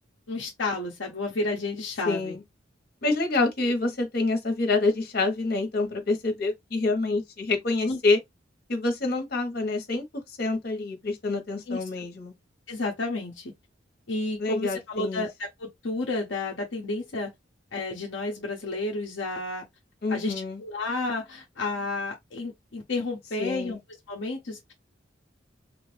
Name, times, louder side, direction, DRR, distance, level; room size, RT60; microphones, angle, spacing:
voice 1, 0.3-2.4 7.9-8.0 11.7-11.8 12.7-13.5 14.1-17.3 17.7-19.6 20.1-20.3 20.6-23.8 24.1-24.7, left 2 dB, 75° left, 0.8 m, -31 dB
voice 2, 2.0-2.4 3.0-8.2 8.7-12.3 14.4-15.3 20.0-20.6 23.4-23.8, left 3 dB, 55° left, 1.3 m, -27 dB
3.2 x 2.6 x 3.3 m
head